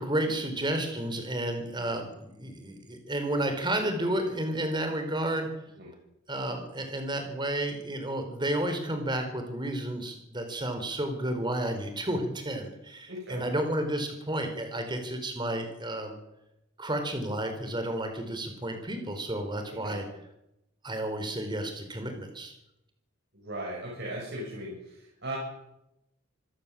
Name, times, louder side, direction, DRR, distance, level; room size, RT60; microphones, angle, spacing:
voice 1, 0.0-5.5 6.3-16.2 16.8-20.0 20.8-22.5, right 1 dB, 20° right, 6 dB, 4.4 m, -31 dB
voice 2, 13.1-13.5 19.8-20.1 23.3-25.4, right 1 dB, 55° right, -3 dB, 7.2 m, -38 dB
26.5 x 16.5 x 7.6 m, 0.88 s
head